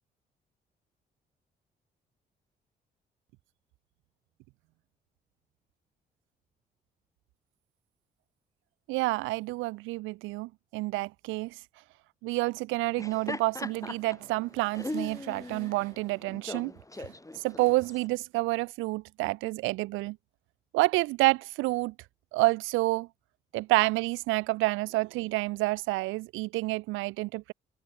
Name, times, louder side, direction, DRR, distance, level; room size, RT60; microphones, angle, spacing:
voice 1, 8.9-11.6 12.2-16.7 17.3-20.2 20.7-21.9 22.3-23.1 23.5-27.5, right 21 dB, 90° right, 1.0 m, -29 dB
Laughter, 12.8-18.1, left 2 dB, 15° left, 7.1 m, -40 dB
open air
supercardioid pair, 55°, 20 cm